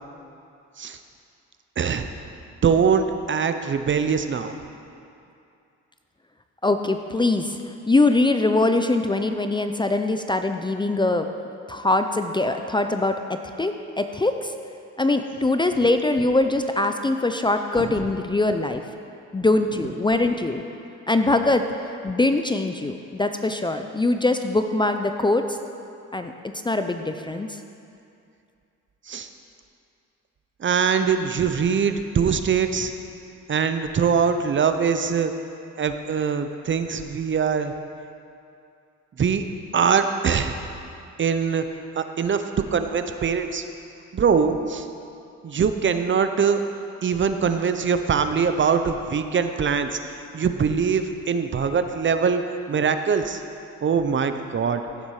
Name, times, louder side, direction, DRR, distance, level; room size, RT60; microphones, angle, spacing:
voice 1, 1.8-2.1 2.6-4.5 17.8-17.9 29.1-29.3 30.6-32.9 33.5-35.3 35.8-37.7 39.2-39.4 39.7-40.6 41.2-41.6 42.0-42.4 42.7-43.6 44.1-44.9 45.4-46.6 47.0-52.4 52.7-53.4 53.8-54.8, right 6 dB, 40° right, 8 dB, 0.7 m, -22 dB
voice 2, 6.6-11.3 11.7-14.5 15.0-18.9 19.3-20.6 21.1-25.6 26.1-26.3 26.6-27.6, left 2 dB, 15° left, 7 dB, 0.5 m, -22 dB
15.5 x 7.2 x 4.9 m, 2.5 s
cardioid pair, 90°, 30 cm